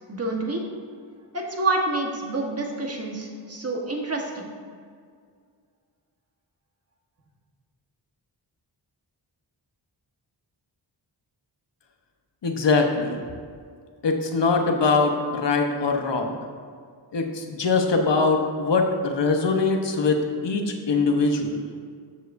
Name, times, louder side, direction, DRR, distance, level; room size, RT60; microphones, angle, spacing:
voice 1, 0.1-0.6 1.3-4.5, right 2 dB, 35° right, 0 dB, 1.4 m, -28 dB
voice 2, 12.4-13.2 14.0-16.4 17.1-21.6, left 4 dB, 70° left, 3 dB, 1.1 m, -22 dB
13.5 x 7.4 x 2.7 m, 2.1 s
wide cardioid pair, 100°, 44 cm